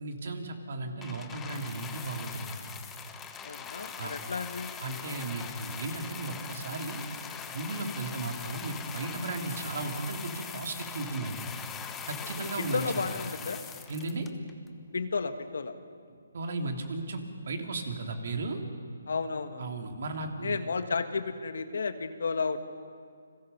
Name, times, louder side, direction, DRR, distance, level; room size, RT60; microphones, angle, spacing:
voice 1, 0.0-2.5 4.0-4.1 4.8-7.0 7.5-11.5 12.1-13.0 13.9-14.3 16.3-18.6 19.6-20.6, right 2 dB, 55° right, 4 dB, 3.0 m, -35 dB
sound 1, 1.0-14.7 15.4-15.5, left 7 dB, 10° left, 1.0 m, -42 dB
voice 2, 3.4-4.7 12.4-13.6 14.9-15.7 19.1-19.7 20.4-22.6, left 4 dB, 70° left, 9 dB, 1.7 m, -32 dB
30.0 x 21.5 x 5.5 m, 2.3 s
hypercardioid pair, 160°, 0 cm